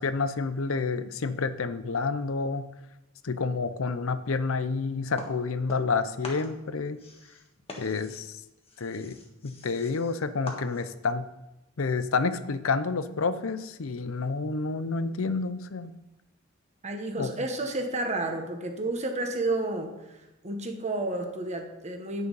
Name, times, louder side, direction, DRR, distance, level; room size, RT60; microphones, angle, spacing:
voice 1, 0.0-2.7 3.2-7.0 7.8-8.4 8.8-9.2 9.4-11.3 11.8-15.9 17.2-17.3, left 4 dB, 85° left, 12 dB, 0.6 m, -29 dB
sound 1, 5.2-6.0 6.2-11.1, left 2 dB, 30° left, 1.5 m, -44 dB
voice 2, 16.8-19.9 20.4-22.3, right 2 dB, 35° right, 4 dB, 1.3 m, -31 dB
9.6 x 6.7 x 5.4 m, 0.96 s
head